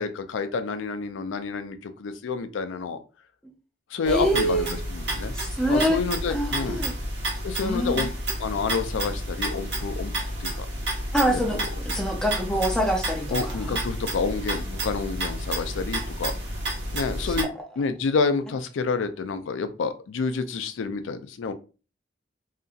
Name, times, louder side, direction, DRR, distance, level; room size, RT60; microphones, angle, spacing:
voice 1, 0.0-3.0 3.9-5.3 5.7-6.8 7.4-8.1 8.4-10.1 10.4-10.7 11.3-11.6 13.3-16.3 16.9-17.5 17.8-21.5, left 4 dB, 85° left, 9 dB, 0.4 m, -29 dB
voice 2, 4.1-4.8 5.3-6.0 6.3-7.0 7.6-8.0 11.1-11.6 11.9-13.8 17.2-17.3, equal, 5° left, 0 dB, 0.5 m, -25 dB
sound 1, 4.1-17.4, right 1 dB, 60° right, 1.1 m, -30 dB
2.8 x 2.6 x 2.4 m, 0.35 s
head